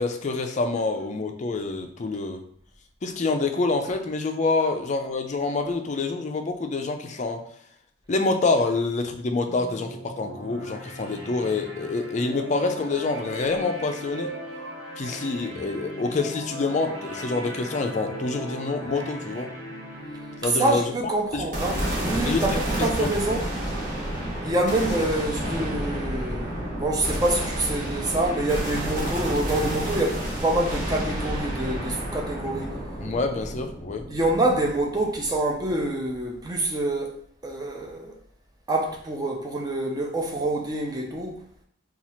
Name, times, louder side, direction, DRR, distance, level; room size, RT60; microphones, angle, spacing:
voice 1, 0.0-2.4 3.0-7.4 8.1-14.3 15.0-19.5 20.4-20.9 21.3-21.5 22.3-23.1 33.0-34.1, left 3 dB, 35° left, 0.4 m, -27 dB
sound 1, 9.4-20.4, equal, 80° right, 1.3 m, -38 dB
voice 2, 20.6-23.5 24.4-32.8 34.1-37.1 37.4-38.1 38.7-41.4, right 1 dB, 20° right, 0.6 m, -26 dB
sound 2, 21.5-35.8, right 1 dB, 45° right, 1.1 m, -30 dB
2.8 x 2.4 x 4.2 m
head